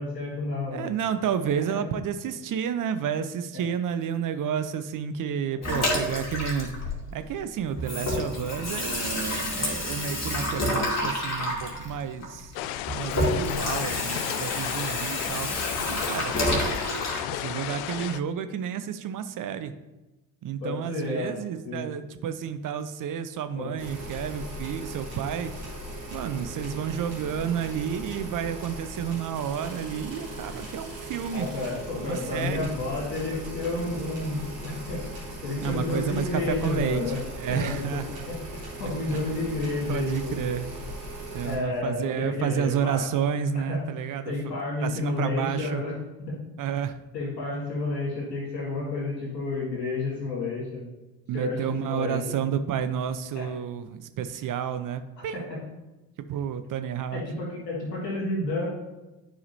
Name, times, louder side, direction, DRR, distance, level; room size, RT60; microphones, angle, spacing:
voice 1, 0.0-0.9 5.6-5.9 20.6-21.3 21.6-21.8 23.5-23.7 30.5-30.6 31.3-35.0 35.4-37.2 37.5-38.0 38.3-40.4 41.4-43.0 43.7-43.8 44.1-45.9 46.3-46.4 47.1-50.9 51.3-52.2 53.3-53.5 57.1-58.7, left 2 dB, 85° left, -4 dB, 2.2 m, -31 dB
voice 2, 0.7-6.8 7.1-12.5 12.9-15.5 15.9-16.3 17.3-19.7 20.4-25.5 26.1-31.5 32.0-32.7 35.6-38.3 39.1-39.3 39.9-40.7 41.3-44.5 44.8-45.8 46.6-47.0 51.3-55.5 56.3-57.2, right 8 dB, 40° right, 10 dB, 0.6 m, -31 dB
Water tap faucet / Sink (filling or washing), 5.6-7.4 7.7-17.2, left 1 dB, 35° left, 2.4 m, -29 dB
sound 1, 12.5-18.2, left 13 dB, 60° left, 0.5 m, -33 dB
sound 2, 23.8-41.5, right 1 dB, 80° right, 2.5 m, -38 dB
11.0 x 4.9 x 2.7 m, 1.1 s
figure-of-eight pair, 45°, 49 cm